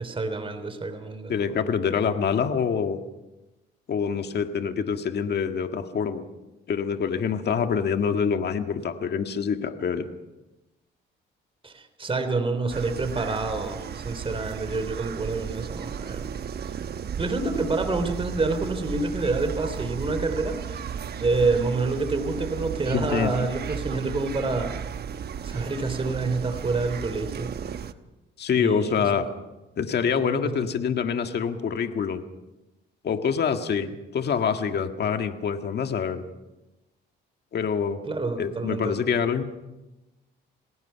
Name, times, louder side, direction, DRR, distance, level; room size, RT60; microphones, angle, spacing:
voice 1, 0.0-1.5 11.6-16.4 17.2-20.8 21.2-24.7 25.4-27.5 28.5-29.1 30.2-30.6 38.1-39.0, right 3 dB, 25° right, 8 dB, 3.4 m, -28 dB
voice 2, 1.3-3.0 3.9-6.2 6.7-10.1 22.9-23.3 28.4-29.3 29.8-32.2 33.0-36.2 37.5-38.0 38.4-39.4, left 6 dB, 55° left, 7 dB, 1.7 m, -26 dB
sound 1, 12.7-27.9, right 7 dB, 55° right, 1.1 m, -35 dB
28.0 x 19.0 x 5.7 m, 1.0 s
cardioid pair, 90°, 20 cm